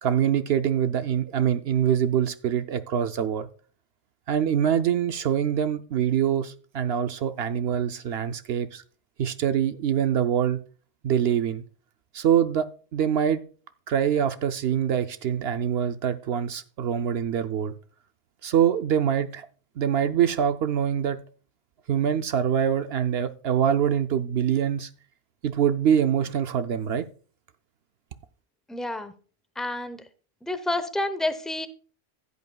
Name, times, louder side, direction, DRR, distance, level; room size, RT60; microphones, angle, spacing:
voice 1, 0.0-3.5 4.3-8.8 9.2-10.6 11.0-11.6 12.1-13.4 13.9-17.7 18.4-19.5 19.8-21.2 21.9-24.9 25.4-27.0, right 9 dB, 65° right, 0.8 m, -24 dB
voice 2, 28.7-29.1 29.6-30.0 30.4-31.7, left 1 dB, ahead, 0.5 m, -29 dB
15.5 x 8.2 x 2.3 m
omnidirectional pair, 1.2 m